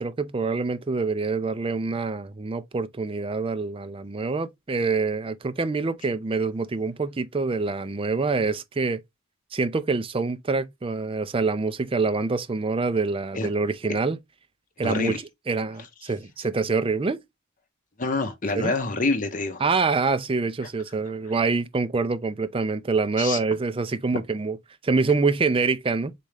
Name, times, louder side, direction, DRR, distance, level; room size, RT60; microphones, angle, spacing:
voice 1, 0.0-9.0 9.5-14.2 14.8-17.2 18.5-18.7 19.6-24.6 24.8-26.1, right 4 dB, 25° right, 0.4 m, -26 dB
voice 2, 14.8-15.2 18.0-19.6 23.2-23.4 24.1-24.2, left 3 dB, 40° left, 0.9 m, -26 dB
4.2 x 3.6 x 3.3 m
head